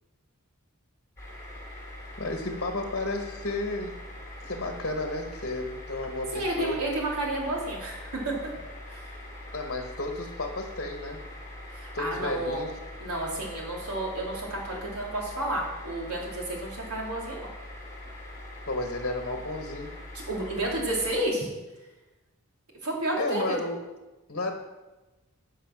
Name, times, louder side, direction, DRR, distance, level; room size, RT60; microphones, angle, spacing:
sound 1, 1.2-21.1, left 1 dB, 15° left, 3.6 m, -43 dB
voice 1, 2.2-4.0 4.5-6.8 9.5-11.2 11.9-12.8 18.7-19.9 23.2-23.8 24.3-24.5, left 2 dB, 50° left, 4 dB, 1.2 m, -32 dB
voice 2, 6.3-8.3 8.9-9.2 11.7-12.6 13.0-17.5 20.1-21.5 22.8-23.6, right 1 dB, 80° right, -2 dB, 3.2 m, -31 dB
14.5 x 5.6 x 6.0 m, 1.1 s
head